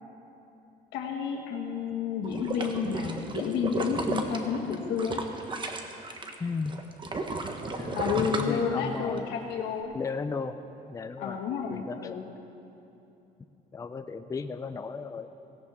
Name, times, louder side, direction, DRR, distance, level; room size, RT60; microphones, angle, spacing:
voice 1, 0.9-5.2 7.9-9.9 11.2-12.2, left 6 dB, 90° left, 1 dB, 1.8 m, -31 dB
sound 1, 2.2-6.3 6.7-9.2 9.6-9.7, right 3 dB, 30° right, 1.1 m, -34 dB
voice 2, 6.4-6.8 7.6-9.3 9.9-10.6 10.9-11.4 11.7-12.2 13.7-15.3, left 4 dB, 20° left, 9 dB, 0.5 m, -35 dB
18.0 x 17.0 x 3.6 m, 2.9 s
cardioid pair, 110°, 17 cm